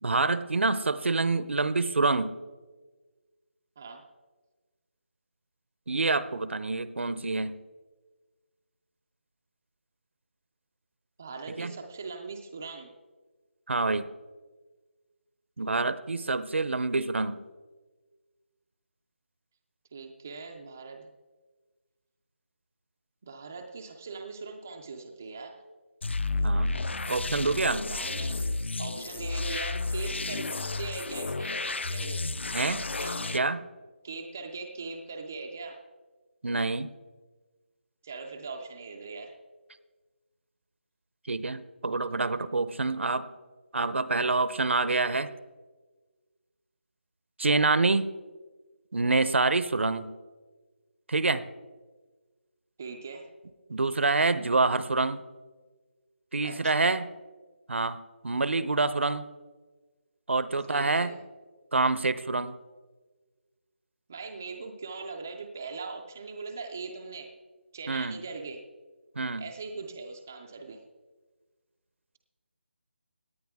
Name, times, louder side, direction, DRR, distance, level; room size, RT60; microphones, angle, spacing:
voice 1, 0.0-2.4 5.9-7.6 11.6-11.8 13.7-14.1 15.6-17.4 26.4-26.7 27.1-27.9 32.5-32.8 33.3-33.7 36.4-36.9 41.3-43.3 43.7-45.3 47.4-48.1 48.9-50.1 51.1-51.4 53.7-55.2 56.3-57.1 57.7-58.0 58.2-59.3 60.3-61.2 61.7-62.6 67.9-68.2 69.2-69.5, right 3 dB, 75° right, 15 dB, 0.7 m, -26 dB
voice 2, 11.2-12.9 19.9-21.1 23.2-25.6 27.9-28.5 28.8-30.5 30.8-32.2 32.9-33.4 34.0-35.8 38.0-39.3 52.8-53.3 56.4-56.9 60.7-61.2 64.1-67.3 67.7-68.6 69.4-70.8, right 4 dB, 10° right, 3 dB, 0.3 m, -40 dB
sound 1, 26.0-33.4, left 3 dB, 65° left, 0.6 m, -31 dB
17.5 x 9.8 x 3.5 m, 1.3 s
figure-of-eight pair, 175°, 7 cm